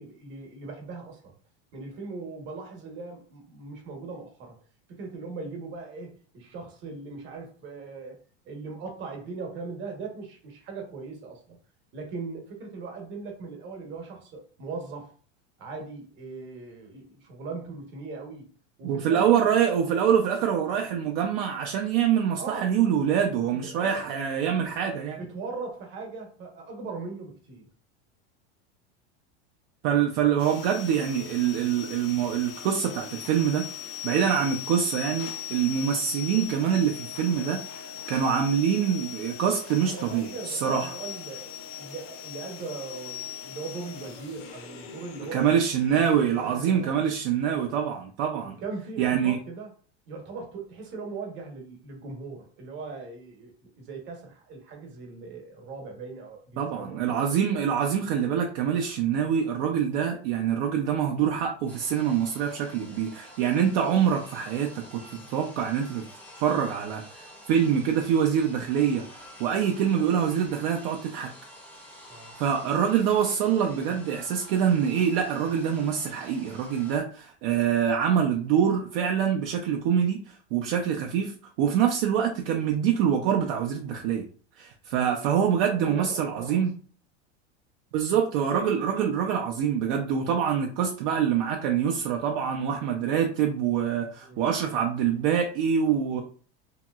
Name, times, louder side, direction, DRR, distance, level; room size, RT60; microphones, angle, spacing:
voice 1, 0.0-1.3 1.7-4.6 4.9-11.6 11.9-15.1 15.6-18.5 18.8-19.5 22.4-22.7 23.5-24.0 25.2-27.7 39.8-45.5 46.2-47.0 47.5-47.7 48.4-49.7 50.1-57.2 72.1-72.4 84.9-85.0 85.8-86.6 94.2-94.4 96.1-96.2, right 4 dB, 35° right, 1.0 m, -39 dB
voice 2, 18.8-25.2 29.8-33.6 34.0-40.9 45.3-48.6 49.0-49.4 56.6-66.0 66.3-71.3 72.4-84.3 84.6-86.7 87.9-96.2, right 8 dB, 55° right, 0.5 m, -25 dB
sound 1, 30.4-47.7, left 10 dB, 65° left, 0.6 m, -40 dB
sound 2, 61.7-77.0, equal, 5° left, 0.6 m, -49 dB
2.9 x 2.8 x 2.3 m
supercardioid pair, 140°, 32 cm